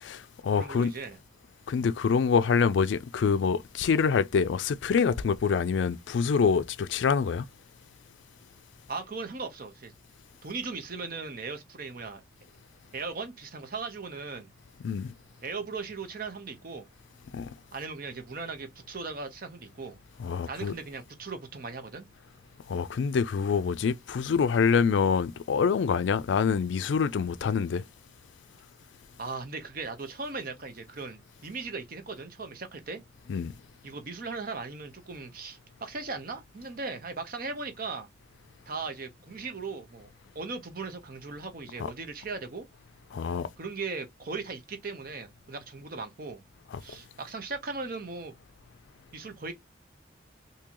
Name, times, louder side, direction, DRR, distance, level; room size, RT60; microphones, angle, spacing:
voice 1, 0.0-0.9 1.7-7.5 14.8-15.1 17.3-17.5 20.2-20.7 22.7-27.8 33.3-33.5 41.8-41.9 43.1-43.5 46.7-46.8, left 6 dB, 80° left, 0.4 m, -26 dB
voice 2, 0.6-1.2 8.9-9.9 10.4-12.2 12.9-14.5 15.4-16.9 17.7-20.0 20.5-22.1 29.2-33.0 33.8-38.1 38.7-42.7 43.6-46.4 46.8-48.3 49.1-49.5, right 4 dB, 50° right, 0.8 m, -38 dB
3.7 x 2.8 x 2.9 m
head